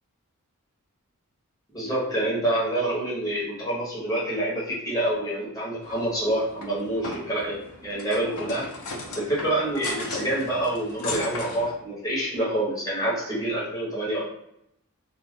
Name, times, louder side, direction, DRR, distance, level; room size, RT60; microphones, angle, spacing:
voice 1, 1.7-8.7 9.0-14.2, right 1 dB, 15° left, -7 dB, 1.2 m, -27 dB
sound 1, 5.8-11.7, left 3 dB, 80° left, 0.6 m, -37 dB
2.5 x 2.2 x 3.5 m, 0.78 s
head